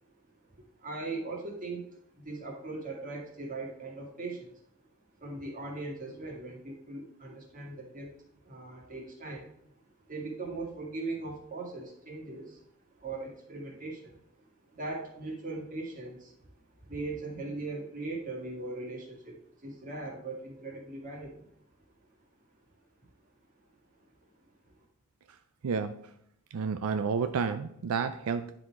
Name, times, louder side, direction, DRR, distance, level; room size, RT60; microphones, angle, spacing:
voice 1, 0.5-1.9 2.1-4.5 5.2-8.2 8.4-9.8 10.1-21.5, right 3 dB, 40° right, -1 dB, 1.9 m, -40 dB
voice 2, 25.6-26.1 26.5-28.5, right 5 dB, 85° right, 9 dB, 0.4 m, -30 dB
10.5 x 4.0 x 4.7 m, 0.73 s
head